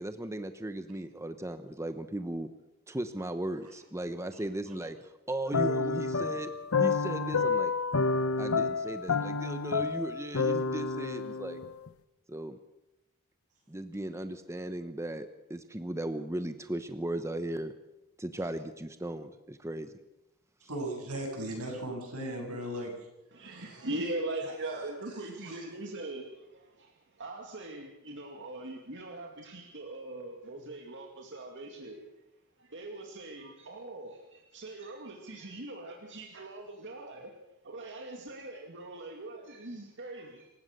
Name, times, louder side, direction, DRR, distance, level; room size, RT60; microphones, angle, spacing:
voice 1, 0.0-2.5 2.9-6.5 6.8-7.7 8.4-11.6 12.3-12.6 13.7-17.7 18.2-19.9, right 1 dB, 15° right, 9 dB, 0.9 m, -37 dB
sound 1, 5.5-11.9, left 4 dB, 65° left, 1.0 m, -29 dB
voice 2, 20.7-22.9 23.4-23.8 25.4-25.6, right 1 dB, 80° right, 1 dB, 7.8 m, -37 dB
voice 3, 23.3-32.1 32.6-37.3 37.6-40.5, right 2 dB, 55° right, 1 dB, 2.4 m, -41 dB
27.0 x 16.0 x 6.6 m, 0.94 s
head